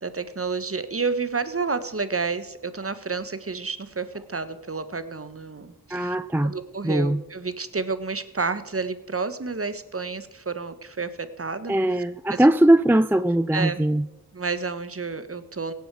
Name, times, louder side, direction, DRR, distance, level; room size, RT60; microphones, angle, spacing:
voice 1, 0.0-6.1 6.4-12.5 13.5-13.8 14.3-15.7, right 4 dB, 35° right, 12 dB, 1.3 m, -30 dB
voice 2, 5.9-6.5 6.8-7.2 11.7-14.0, right 1 dB, 5° right, 13 dB, 0.5 m, -20 dB
17.5 x 9.5 x 4.8 m, 1.0 s
cardioid pair, 45°, 38 cm